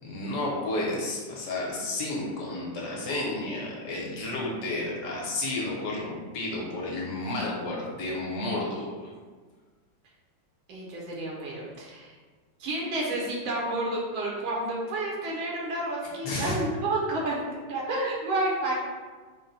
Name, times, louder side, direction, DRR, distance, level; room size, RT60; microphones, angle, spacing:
voice 1, 0.0-9.1 16.2-16.6, left 2 dB, 65° left, -4 dB, 1.3 m, -31 dB
voice 2, 10.7-12.1 12.6-17.4 17.7-18.7, right 2 dB, 80° right, -3 dB, 1.5 m, -30 dB
4.1 x 2.1 x 3.9 m, 1.5 s
omnidirectional pair, 2.2 m